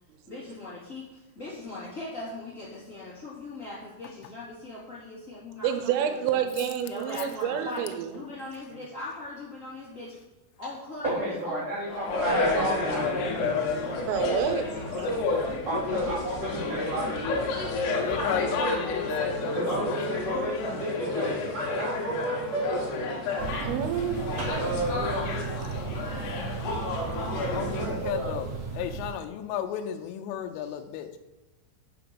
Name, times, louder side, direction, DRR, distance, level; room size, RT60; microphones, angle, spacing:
voice 1, 0.3-6.4 6.9-10.2 10.6-11.6 14.7-15.3 15.8-16.2 25.0-26.5, left 2 dB, 20° left, -9 dB, 2.1 m, -40 dB
voice 2, 5.6-8.1 14.0-14.8 23.6-24.5, right 9 dB, 85° right, 7 dB, 3.4 m, -28 dB
voice 3, 11.0-13.6 15.6-17.5 19.5-22.9 23.3-23.7 24.4-25.6 27.4-28.3, right 1 dB, 40° right, -10 dB, 3.2 m, -32 dB
sound 1, 11.8-27.9, left 3 dB, 65° left, 3.1 m, -30 dB
voice 4, 17.9-20.2 27.5-31.2, left 9 dB, 80° left, 6 dB, 3.1 m, -34 dB
sound 2, 23.4-29.1, right 5 dB, 55° right, 1.8 m, -35 dB
7.0 x 6.1 x 6.9 m, 1.1 s
omnidirectional pair, 5.8 m